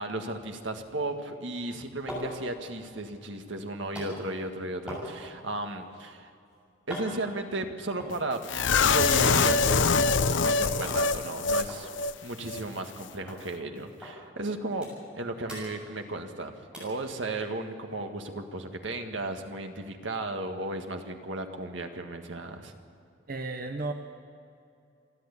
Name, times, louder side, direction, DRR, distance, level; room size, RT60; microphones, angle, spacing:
voice 1, 0.0-6.3 6.9-8.4 8.8-14.9 15.1-22.7, right 2 dB, 80° right, 5 dB, 1.7 m, -35 dB
sound 1, 1.8-9.5 9.8-10.4 10.8-11.0 11.3-11.4 11.7-13.0 13.3-13.4 14.0-14.2 14.5-15.2 15.4-16.4 16.7-17.0 17.5-17.6, equal, 5° right, 7.1 m, -43 dB
sound 2, 8.5-11.7 12.0-12.1 12.5-12.6, left 4 dB, 75° left, 0.6 m, -24 dB
voice 2, 23.3-23.9, right 2 dB, 50° right, 5 dB, 1.0 m, -33 dB
28.0 x 11.5 x 8.4 m, 2.5 s
head